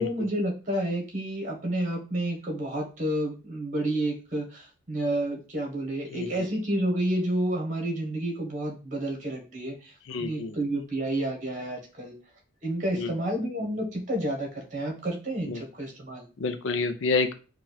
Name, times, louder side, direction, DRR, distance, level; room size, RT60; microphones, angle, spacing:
voice 1, 0.0-9.9 10.2-12.1 12.6-16.3, right 1 dB, 40° right, 2 dB, 1.2 m, -30 dB
voice 2, 6.1-6.4 10.1-10.6 13.0-13.1 15.4-15.6 16.4-17.3, left 3 dB, 65° left, 9 dB, 0.5 m, -28 dB
4.2 x 2.4 x 4.1 m, 0.34 s
head